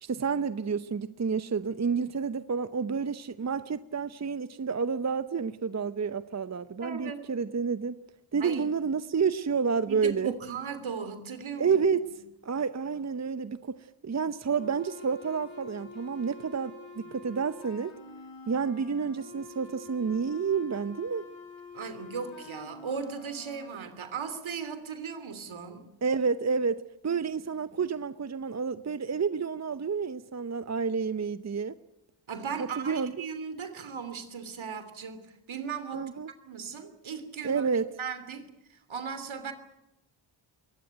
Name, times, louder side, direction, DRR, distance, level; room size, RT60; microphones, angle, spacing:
voice 1, 0.0-8.0 8.3-10.3 11.6-12.0 12.4-13.8 14.0-17.9 18.5-21.3 26.0-31.7 32.8-33.1 35.9-36.3 37.4-37.8, right 5 dB, 35° right, 14 dB, 0.9 m, -29 dB
voice 2, 6.8-7.3 8.4-8.7 9.9-11.8 12.0-12.1 21.7-25.9 32.3-36.1 36.4-37.7 38.0-39.5, right 6 dB, 70° right, 11 dB, 3.2 m, -37 dB
sound 1, 14.5-23.7, left 4 dB, 80° left, 7.5 m, -47 dB
22.5 x 18.5 x 9.1 m, 0.91 s
cardioid pair, 60°, 48 cm